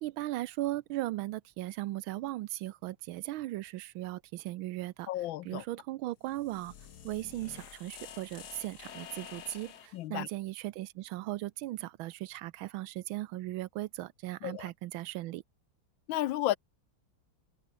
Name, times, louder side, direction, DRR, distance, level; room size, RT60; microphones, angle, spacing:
voice 1, 0.0-5.1 5.4-6.7 7.0-15.4, right 16 dB, 80° right, 1.4 m, -37 dB
voice 2, 5.1-5.6 9.9-10.3 14.4-14.7 16.1-16.6, left 14 dB, 75° left, 1.3 m, -32 dB
sound 1, 6.2-10.0, left 8 dB, 55° left, 1.7 m, -49 dB
omnidirectional pair, 2.3 m